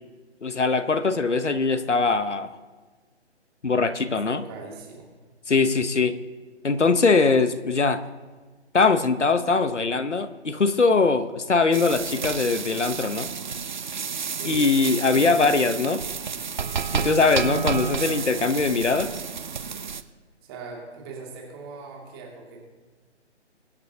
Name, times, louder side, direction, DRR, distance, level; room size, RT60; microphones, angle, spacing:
voice 1, 0.4-2.6 3.6-4.4 5.5-6.2 6.6-8.0 8.7-13.3 14.4-16.0 16.9-19.2, left 4 dB, 80° left, 12 dB, 1.0 m, -22 dB
voice 2, 4.3-5.1 14.3-14.7 20.4-22.7, right 4 dB, 20° right, -1 dB, 2.4 m, -40 dB
sound 1, 11.7-20.0, right 6 dB, 40° right, 0.6 m, -30 dB
23.0 x 9.6 x 2.8 m, 1.4 s
figure-of-eight pair, 145°, 35 cm